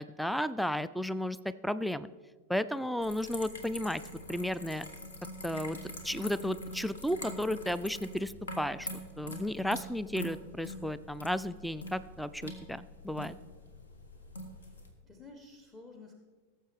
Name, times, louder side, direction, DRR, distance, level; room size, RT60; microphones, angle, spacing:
voice 1, 0.0-2.1 2.5-4.0 4.3-4.9 5.4-5.8 6.0-8.9 9.2-13.4, equal, ahead, 16 dB, 0.3 m, -33 dB
sound 1, 3.0-14.9, left 1 dB, 70° left, 1.4 m, -44 dB
voice 2, 14.6-16.1, left 3 dB, 15° left, 2 dB, 1.1 m, -52 dB
18.0 x 7.6 x 3.5 m, 1.4 s
figure-of-eight pair, 90°, 0 cm